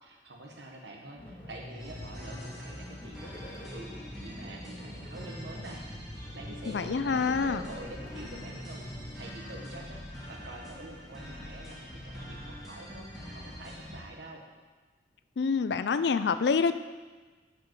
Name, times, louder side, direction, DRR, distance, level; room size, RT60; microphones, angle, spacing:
voice 1, 0.0-5.8 6.3-8.8 9.2-10.0 10.3-14.4, right 1 dB, 70° right, 0 dB, 1.5 m, -46 dB
sound 1, 1.2-9.2, left 1 dB, 25° left, 2.2 m, -45 dB
sound 2, 1.8-14.0, equal, ahead, 2.4 m, -44 dB
voice 2, 6.7-7.6 15.4-16.7, left 5 dB, 65° left, 11 dB, 0.4 m, -26 dB
11.5 x 5.2 x 4.8 m, 1.3 s
head